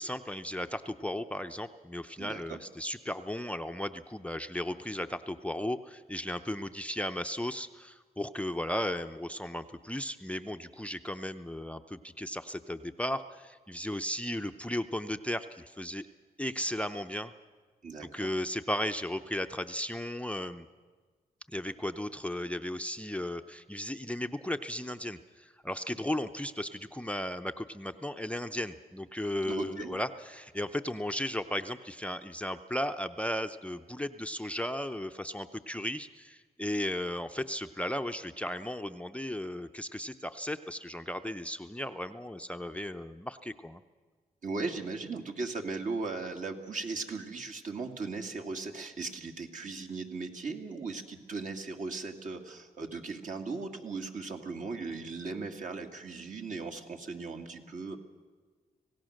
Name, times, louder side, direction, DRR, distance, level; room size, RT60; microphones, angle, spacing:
voice 1, 0.0-16.1 16.4-17.3 18.1-20.7 21.5-43.8, left 1 dB, 10° left, 7 dB, 0.6 m, -35 dB
voice 2, 2.2-2.6 17.8-18.3 29.4-30.0 44.4-58.0, right 3 dB, 55° right, 3 dB, 2.2 m, -38 dB
26.0 x 17.0 x 6.5 m, 1.4 s
cardioid pair, 80°, 16 cm